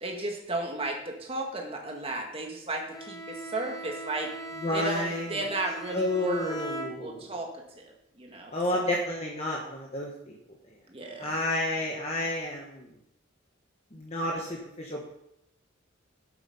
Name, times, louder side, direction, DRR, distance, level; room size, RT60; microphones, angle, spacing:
voice 1, 0.0-4.3 4.7-7.9 8.2-8.8 10.9-11.4, right 2 dB, 30° right, 1 dB, 1.8 m, -34 dB
Bowed string instrument, 2.9-7.5, right 1 dB, 15° left, 1.0 m, -40 dB
voice 2, 4.6-5.4 5.9-7.3 8.5-10.4 11.2-12.9 13.9-15.1, left 1 dB, 35° left, -2 dB, 1.3 m, -31 dB
8.3 x 8.1 x 5.5 m, 0.80 s
head